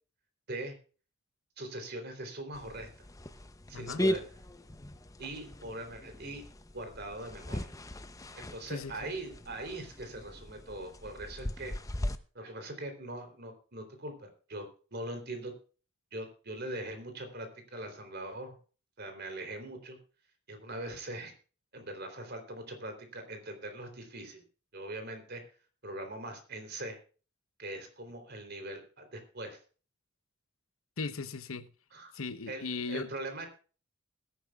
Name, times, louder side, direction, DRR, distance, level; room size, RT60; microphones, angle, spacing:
voice 1, 1.6-2.9 3.7-4.2 5.2-6.4 6.7-7.7 8.4-11.7 12.4-14.6 14.9-15.5 16.1-18.6 19.0-20.0 20.5-21.3 21.7-24.4 24.7-25.4 25.8-27.0 27.6-29.6 31.9-32.1 32.5-33.5, right 1 dB, 50° right, 3.5 m, -41 dB
sound 1, 2.5-12.2, left 1 dB, 15° left, 0.7 m, -38 dB
voice 2, 8.7-9.1 31.0-31.7 32.1-33.1, left 4 dB, 90° left, 1.0 m, -37 dB
20.5 x 10.5 x 2.4 m
head